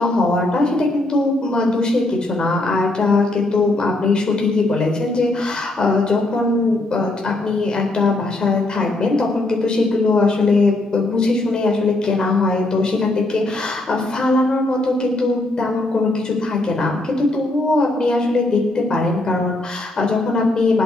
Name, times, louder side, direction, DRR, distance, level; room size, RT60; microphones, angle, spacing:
voice 1, 0.0-20.8, left 3 dB, 35° left, 0 dB, 5.2 m, -19 dB
19.5 x 8.6 x 4.8 m, 1.1 s
cardioid pair, 115°, 3 cm